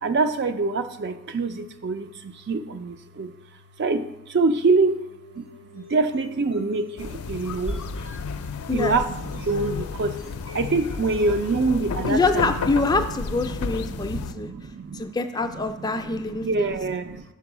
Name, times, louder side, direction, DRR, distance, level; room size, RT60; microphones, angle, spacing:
voice 1, 0.0-3.3 3.8-5.1 5.4-7.8 8.7-10.2 10.5-12.5 13.3-15.1 15.5-17.2, right 3 dB, 50° right, 9 dB, 0.4 m, -26 dB
sound 1, 4.7-11.8, left 1 dB, 85° right, 1.5 m, -49 dB
sound 2, 7.0-14.3, left 5 dB, 85° left, 0.4 m, -32 dB
sound 3, 7.7-11.9, equal, 70° right, 2.9 m, -39 dB
voice 2, 12.1-14.5 14.9-16.7, left 3 dB, 20° left, 7 dB, 0.3 m, -25 dB
6.1 x 4.6 x 5.9 m, 1.0 s
head